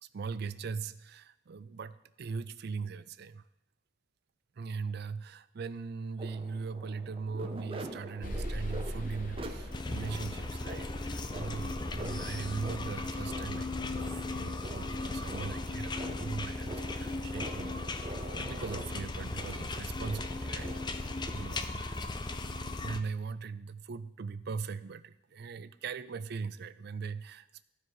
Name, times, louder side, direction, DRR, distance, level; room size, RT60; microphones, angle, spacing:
voice 1, 0.0-3.5 4.6-21.8 22.8-27.6, right 5 dB, 55° right, 14 dB, 0.4 m, -40 dB
sound 1, 6.2-21.3, right 1 dB, 30° right, 0.8 m, -46 dB
sound 2, 8.2-14.3, equal, 45° left, 1.2 m, -42 dB
sound 3, 9.7-23.0, left 2 dB, 25° left, 0.5 m, -37 dB
14.0 x 4.9 x 4.7 m, 0.87 s
head